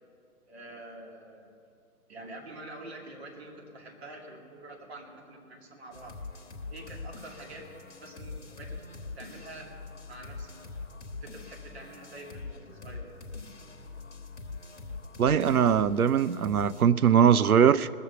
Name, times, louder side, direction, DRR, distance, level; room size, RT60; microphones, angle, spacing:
voice 1, 0.5-1.5 2.1-6.2 6.7-7.7 8.0-9.7 10.1-10.6 11.1-13.1, right 1 dB, 45° right, 2.4 m, -46 dB
sound 1, 5.9-16.8, left 3 dB, 50° left, 1.2 m, -43 dB
voice 2, 15.2-18.0, right 8 dB, 75° right, 0.6 m, -21 dB
20.0 x 6.9 x 6.9 m
figure-of-eight pair, 135°, 44 cm